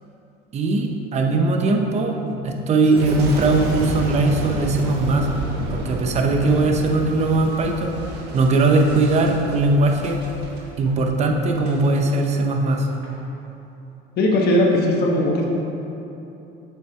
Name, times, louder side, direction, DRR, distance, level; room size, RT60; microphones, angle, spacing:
voice 1, 0.5-5.3 5.7-8.0 8.3-10.2 10.8-12.9, right 2 dB, 35° right, 3 dB, 0.9 m, -20 dB
Boom, 2.8-12.2 12.7-13.2, right 2 dB, 55° right, 1.3 m, -31 dB
voice 2, 14.2-15.5, left 1 dB, 55° left, -1 dB, 1.3 m, -18 dB
7.5 x 7.3 x 4.4 m, 3.0 s
cardioid pair, 135°, 20 cm